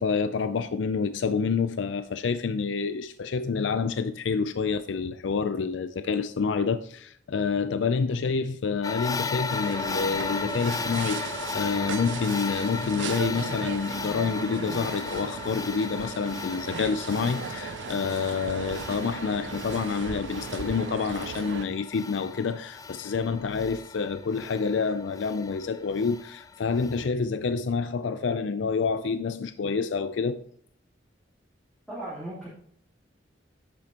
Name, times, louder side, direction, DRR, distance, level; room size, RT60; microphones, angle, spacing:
voice 1, 0.0-30.4, left 5 dB, 90° left, 0.4 m, -28 dB
sound 1, 8.8-27.1, left 4 dB, 20° left, 0.4 m, -36 dB
sound 2, 9.5-21.7, right 7 dB, 75° right, 0.4 m, -37 dB
voice 2, 31.9-32.5, right 1 dB, ahead, 3.3 m, -36 dB
10.5 x 8.6 x 2.9 m
head